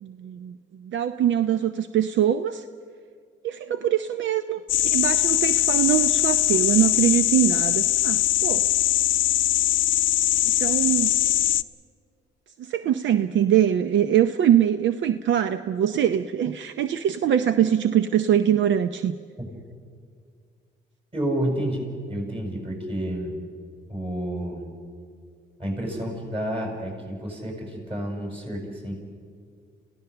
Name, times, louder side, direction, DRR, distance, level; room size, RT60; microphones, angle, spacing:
voice 1, 0.0-2.6 3.4-8.6 10.6-11.1 12.6-19.2, right 10 dB, 70° right, 10 dB, 0.7 m, -23 dB
sound 1, 4.7-11.6, left 14 dB, 75° left, 0.6 m, -21 dB
voice 2, 21.1-23.3 23.9-24.7 25.6-28.9, right 1 dB, 30° right, 0 dB, 7.2 m, -30 dB
27.0 x 16.0 x 6.9 m, 2.1 s
cardioid pair, 90°, 20 cm